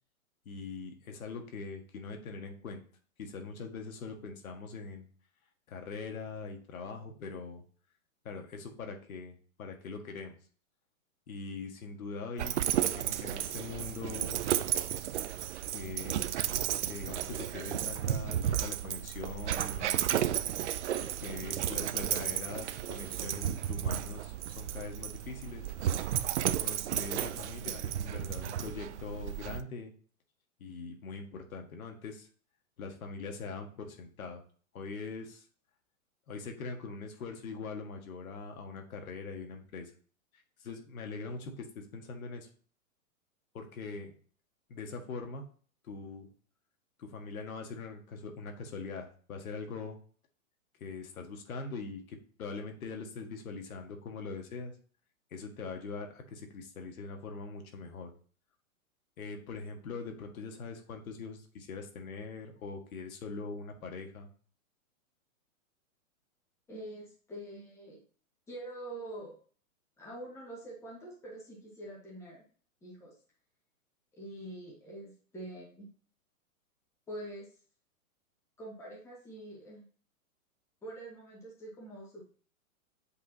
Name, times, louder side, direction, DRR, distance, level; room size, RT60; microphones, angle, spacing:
voice 1, 0.5-2.8 3.2-5.1 5.7-7.6 8.2-9.3 9.6-10.4 11.3-12.5 12.9-14.4 15.7-16.1 16.9-20.1 21.0-25.7 26.6-29.9 30.6-32.3 32.8-34.4 34.7-35.4 36.3-39.9 40.6-42.5 43.5-44.1 44.7-45.4 45.8-46.3 47.0-50.0 50.8-54.7 55.3-58.1 59.2-64.3, left 4 dB, 75° left, 4 dB, 1.9 m, -42 dB
Dog, 12.4-29.6, right 11 dB, 55° right, 0.6 m, -33 dB
voice 2, 66.7-68.0 68.5-69.3 70.0-72.4 72.8-73.1 74.2-75.9 77.1-77.5 78.6-79.9 80.8-82.2, right 1 dB, 5° left, -5 dB, 1.8 m, -45 dB
8.3 x 5.4 x 2.9 m, 0.43 s
hypercardioid pair, 165°, 43 cm